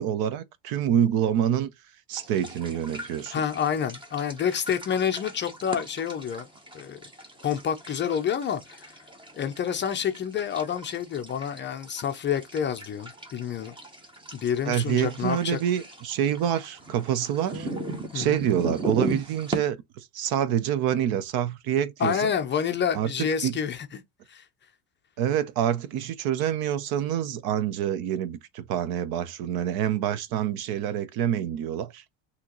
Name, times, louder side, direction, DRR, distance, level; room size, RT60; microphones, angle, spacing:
voice 1, 0.0-1.7 2.1-3.4 14.7-17.7 18.1-19.8 20.1-22.3 22.9-23.1 23.4-23.5 25.2-32.0, right 10 dB, 55° right, 0.7 m, -26 dB
sound 1, 2.1-19.6, right 2 dB, 10° right, 0.8 m, -38 dB
voice 2, 3.3-6.5 6.7-7.0 7.4-9.0 9.3-13.7 14.3-15.6 18.1-18.4 22.0-24.0 24.3-24.4, left 8 dB, 25° left, 0.5 m, -28 dB
6.1 x 2.9 x 2.9 m
cardioid pair, 140°, 44 cm